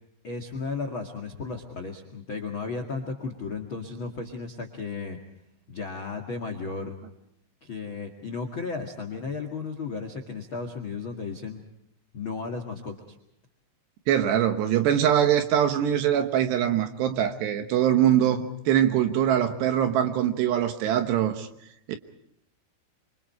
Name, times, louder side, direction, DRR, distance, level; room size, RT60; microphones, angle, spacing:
voice 1, 0.2-5.2 5.7-6.9 7.6-11.6 12.1-12.9, left 4 dB, 60° left, 1.3 m, -34 dB
voice 2, 14.1-21.5 21.9-22.0, right 10 dB, 70° right, 2.9 m, -23 dB
28.0 x 25.0 x 4.7 m
omnidirectional pair, 5.7 m